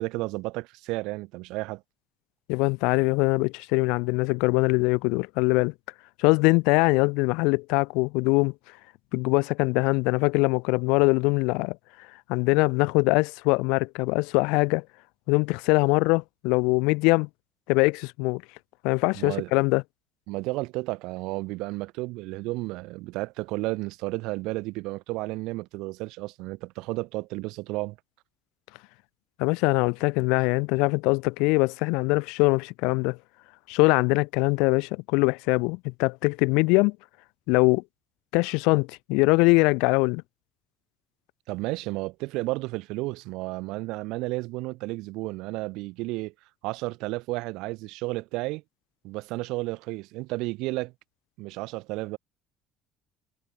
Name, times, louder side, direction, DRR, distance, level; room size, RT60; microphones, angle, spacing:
voice 1, 0.0-1.8 19.1-19.5 20.3-28.0 41.5-46.3 46.6-48.6 49.0-50.9 51.4-52.2, right 22 dB, 65° right, 1.6 m, -32 dB
voice 2, 2.5-5.7 6.2-8.5 9.1-11.8 12.3-14.8 15.3-17.3 17.7-18.4 18.8-19.8 29.4-33.2 33.7-37.0 37.5-37.8 38.3-40.2, left 28 dB, 90° left, 1.3 m, -22 dB
cardioid pair, 175°, 0 cm